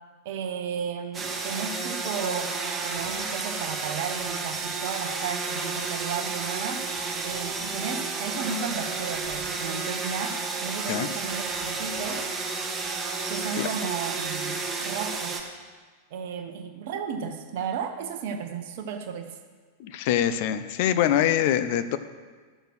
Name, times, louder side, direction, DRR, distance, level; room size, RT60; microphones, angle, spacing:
voice 1, 0.2-2.6 2.8-6.9 7.2-12.3 13.3-15.5 16.1-19.3, right 6 dB, 50° right, 5 dB, 0.8 m, -34 dB
sound 1, 1.1-15.4, right 4 dB, 20° right, 1.3 m, -31 dB
voice 2, 19.8-22.0, left 10 dB, 50° left, 12 dB, 0.6 m, -24 dB
11.0 x 6.7 x 6.1 m, 1.4 s
figure-of-eight pair, 90°, 0 cm